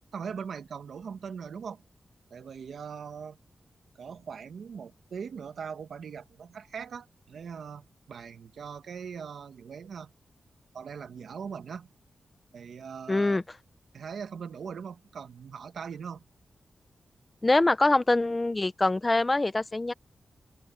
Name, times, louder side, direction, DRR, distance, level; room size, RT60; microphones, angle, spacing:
voice 1, 0.1-1.8 2.3-3.4 4.0-10.1 10.7-11.9 12.5-13.4 13.9-16.2, right 6 dB, 85° right, 1.6 m, -40 dB
voice 2, 13.1-13.4 17.4-19.9, left 2 dB, 20° left, 0.7 m, -24 dB
open air
wide cardioid pair, 140°, 0 cm